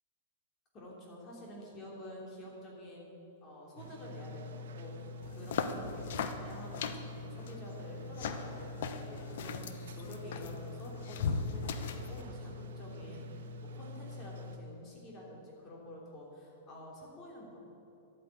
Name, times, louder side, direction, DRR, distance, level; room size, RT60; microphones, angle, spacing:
voice 1, 0.7-3.2 3.4-9.7 9.9-13.3 13.6-17.6, left 1 dB, 20° left, -3 dB, 3.1 m, -49 dB
sound 1, 3.8-14.6, left 1 dB, 75° right, 1.3 m, -45 dB
sound 2, 5.2-12.2, left 6 dB, 65° left, 0.9 m, -39 dB
12.0 x 9.1 x 8.2 m, 3.0 s
supercardioid pair, 165°, 0 cm